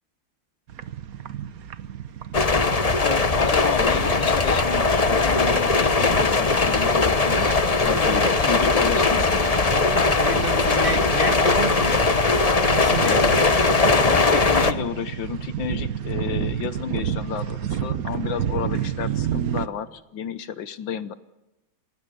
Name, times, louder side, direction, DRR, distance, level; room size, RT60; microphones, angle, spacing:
sound 1, 0.7-19.7, right 9 dB, 55° right, 1.2 m, -32 dB
sound 2, 2.3-14.7, left 3 dB, 35° left, 0.6 m, -20 dB
voice 1, 3.0-9.7 13.0-13.4 13.9-21.1, left 8 dB, 70° left, 12 dB, 1.6 m, -31 dB
voice 2, 8.1-8.6 10.2-12.0 12.6-13.5, right 2 dB, 30° right, 5 dB, 1.9 m, -30 dB
27.0 x 19.0 x 6.8 m, 0.99 s
omnidirectional pair, 2.2 m